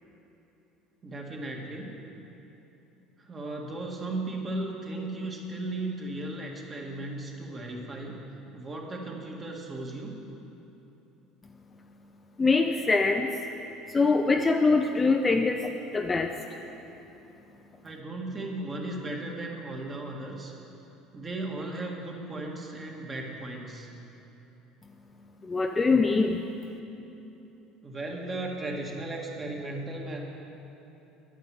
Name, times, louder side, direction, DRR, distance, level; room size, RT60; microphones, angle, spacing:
voice 1, 1.0-2.0 3.2-8.2 8.5-10.2 17.8-20.5 21.1-23.9 27.8-30.2, right 2 dB, 25° right, 0 dB, 1.8 m, -36 dB
voice 2, 12.4-13.4 13.9-16.6 25.4-26.4, left 3 dB, 20° left, 4 dB, 0.5 m, -24 dB
10.5 x 9.3 x 7.6 m, 3.0 s
cardioid pair, 125°, 0 cm